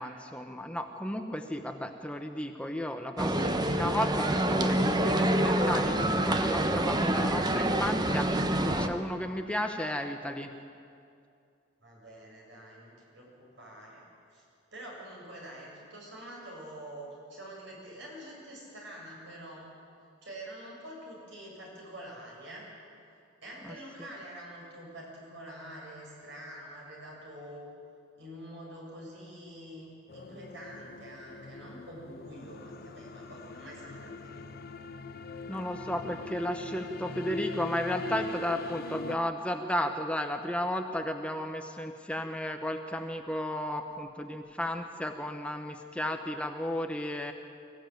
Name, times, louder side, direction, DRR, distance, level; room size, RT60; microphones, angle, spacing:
voice 1, 0.0-10.5 23.6-23.7 35.5-47.3, left 1 dB, 5° left, 5 dB, 1.0 m, -34 dB
sound 1, 3.2-8.9, right 1 dB, 20° right, 1.0 m, -27 dB
voice 2, 11.8-14.0 14.3-14.4 14.7-19.7 20.2-22.7 23.4-27.7 28.2-34.5, right 1 dB, 65° right, -3 dB, 7.6 m, -46 dB
sound 2, 30.1-39.2, left 3 dB, 55° left, 0.8 m, -41 dB
24.0 x 15.5 x 9.2 m, 2.4 s
head